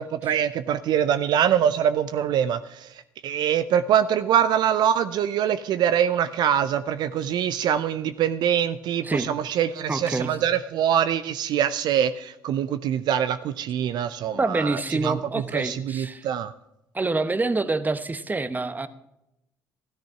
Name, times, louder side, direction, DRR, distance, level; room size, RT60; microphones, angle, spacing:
voice 1, 0.2-2.9 3.2-15.2 15.5-16.5, right 9 dB, 65° right, 12 dB, 0.5 m, -24 dB
voice 2, 9.9-10.4 14.3-16.3 16.9-18.9, right 3 dB, 20° right, 13 dB, 1.1 m, -26 dB
13.5 x 10.5 x 5.8 m, 0.87 s
hypercardioid pair, 55°, 8 cm